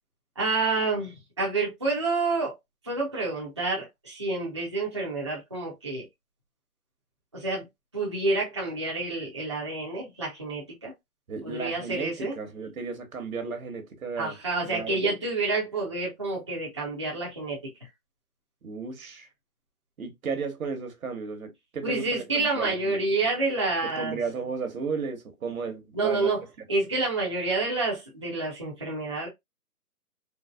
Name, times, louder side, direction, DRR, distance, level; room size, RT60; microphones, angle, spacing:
voice 1, 0.4-2.6 2.8-6.0 7.3-7.7 7.9-10.9 11.4-12.3 14.2-17.6 21.8-24.2 25.9-26.4 26.7-29.3, right 3 dB, 20° right, 0.5 m, -28 dB
voice 2, 11.3-14.4 14.6-15.1 18.6-19.3 20.0-23.0 23.8-26.3, right 5 dB, 70° right, 1.1 m, -34 dB
3.9 x 2.0 x 2.2 m
hypercardioid pair, 165°, 43 cm